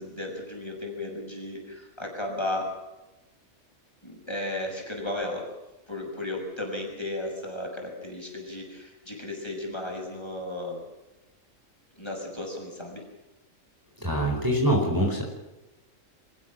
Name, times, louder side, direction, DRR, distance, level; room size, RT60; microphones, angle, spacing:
voice 1, 0.0-2.7 4.0-5.5 5.9-10.8 12.0-13.0, left 1 dB, 20° left, 0 dB, 6.8 m, -34 dB
voice 2, 14.0-15.2, right 1 dB, 15° right, -1 dB, 4.5 m, -24 dB
27.5 x 15.0 x 7.5 m, 1.0 s
omnidirectional pair, 1.4 m